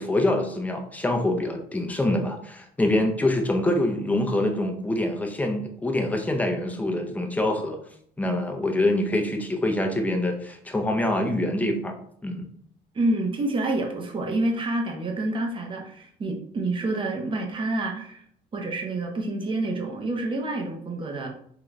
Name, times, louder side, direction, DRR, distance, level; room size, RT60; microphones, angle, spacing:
voice 1, 0.0-7.8 8.2-12.0 12.2-12.5, left 1 dB, 10° left, 3 dB, 0.5 m, -25 dB
voice 2, 12.9-18.2 18.5-21.3, right 2 dB, 30° right, 2 dB, 0.8 m, -28 dB
3.7 x 2.3 x 3.1 m, 0.66 s
cardioid pair, 110°, 17 cm